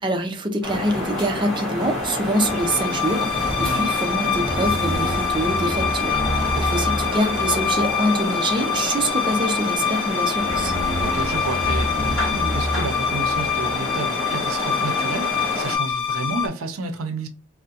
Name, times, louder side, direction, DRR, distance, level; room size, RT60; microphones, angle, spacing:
voice 1, 0.0-10.7, right 1 dB, 20° right, 0.5 m, -25 dB
sound 1, 0.6-15.8, left 1 dB, ahead, 1.1 m, -28 dB
sound 2, 2.3-16.5, left 5 dB, 20° left, 0.6 m, -25 dB
voice 2, 6.5-7.1 11.0-17.3, right 3 dB, 80° right, 0.5 m, -31 dB
3.5 x 2.1 x 2.8 m
head